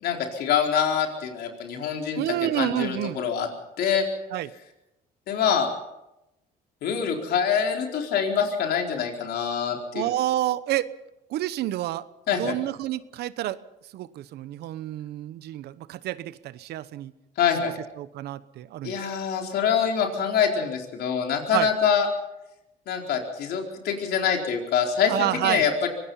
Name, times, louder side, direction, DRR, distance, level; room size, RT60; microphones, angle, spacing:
voice 1, 0.0-3.5 3.8-4.0 5.3-5.7 6.8-10.1 12.3-12.5 17.4-17.8 18.8-22.1 22.9-25.9, left 7 dB, 70° left, 2 dB, 4.4 m, -25 dB
voice 2, 2.2-3.2 4.3-4.5 9.9-10.9 11.3-12.1 12.4-13.6 13.9-17.1 18.0-19.0 21.5-21.7 25.1-25.7, right 14 dB, 75° right, 16 dB, 1.0 m, -29 dB
24.0 x 19.0 x 5.6 m, 0.91 s
cardioid pair, 110°, 17 cm